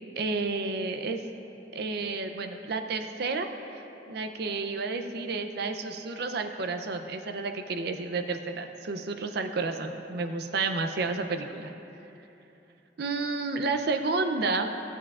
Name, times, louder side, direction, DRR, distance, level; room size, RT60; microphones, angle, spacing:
voice 1, 0.2-1.2 1.7-11.7 13.0-14.7, right 3 dB, 60° right, 6 dB, 0.5 m, -31 dB
16.0 x 7.1 x 2.4 m, 3.0 s
head